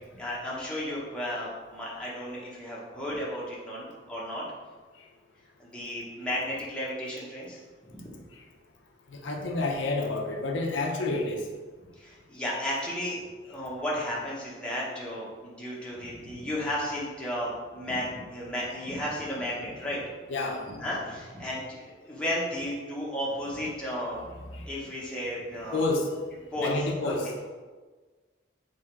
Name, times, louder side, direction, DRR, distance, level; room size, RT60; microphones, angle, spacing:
voice 1, 0.1-4.4 5.6-7.6 7.9-8.2 12.0-13.2 13.4-20.0 20.8-24.2 24.7-25.8 26.5-26.7 27.0-27.1, left 1 dB, 5° left, -7 dB, 0.9 m, -33 dB
voice 2, 9.1-11.5 20.3-20.6 24.3-24.7 25.7-26.1 26.6-27.4, left 2 dB, 75° left, 0 dB, 0.6 m, -30 dB
3.5 x 2.9 x 4.4 m, 1.4 s
head